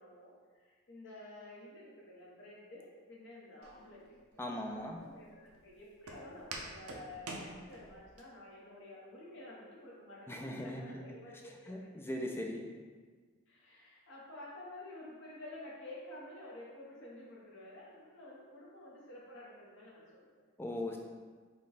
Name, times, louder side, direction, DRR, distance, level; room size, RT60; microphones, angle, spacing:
voice 1, 0.0-4.0 4.4-11.9 13.5-20.4, left 1 dB, 55° left, -5 dB, 1.0 m, -51 dB
Walk footsteps, 3.6-8.2, right 2 dB, 90° right, 0.6 m, -48 dB
voice 2, 4.4-5.0 10.3-11.0 11.7-12.7 20.6-21.0, left 1 dB, 10° left, 1 dB, 0.3 m, -39 dB
5.1 x 2.3 x 4.1 m, 1.5 s
head